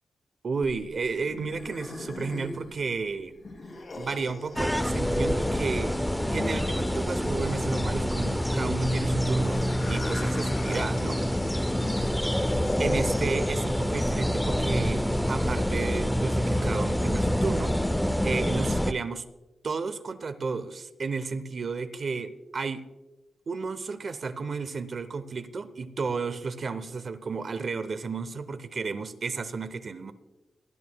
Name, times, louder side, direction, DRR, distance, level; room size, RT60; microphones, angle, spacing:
voice 1, 0.4-3.3 4.0-6.0 6.3-11.2 12.8-17.7 18.2-19.2 19.6-22.8 23.5-30.1, right 4 dB, 50° right, 12 dB, 0.7 m, -32 dB
sound 1, 0.6-13.6, left 2 dB, 50° left, 1.6 m, -41 dB
sound 2, 4.6-18.9, equal, 5° left, 0.4 m, -26 dB
23.0 x 10.5 x 2.3 m, 1.1 s
wide cardioid pair, 140°, 0 cm